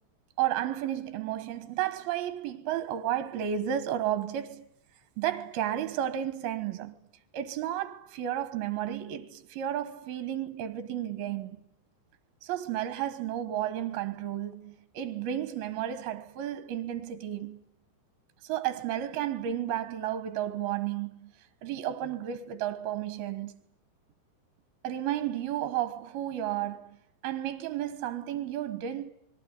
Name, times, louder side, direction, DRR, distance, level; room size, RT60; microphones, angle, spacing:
voice 1, 0.4-4.7 5.2-6.9 7.3-11.6 12.4-17.6 18.4-21.3 21.6-23.5 24.8-27.0 27.2-29.1, right 11 dB, 65° right, 2.9 m, -32 dB
27.5 x 21.5 x 9.7 m
omnidirectional pair, 5.1 m